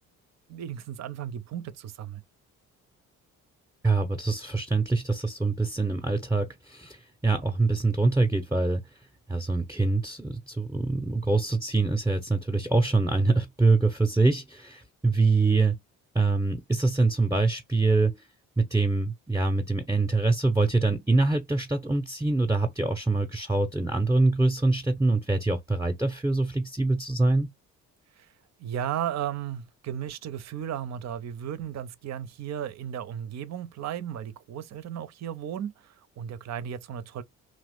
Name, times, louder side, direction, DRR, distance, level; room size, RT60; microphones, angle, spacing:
voice 1, 0.5-2.2 28.2-28.3 28.6-37.2, right 9 dB, 45° right, 0.6 m, -35 dB
voice 2, 3.8-8.8 9.3-15.8 16.1-18.2 18.6-27.5, right 3 dB, 10° right, 0.7 m, -24 dB
3.0 x 2.5 x 3.5 m
hypercardioid pair, 50°, 39 cm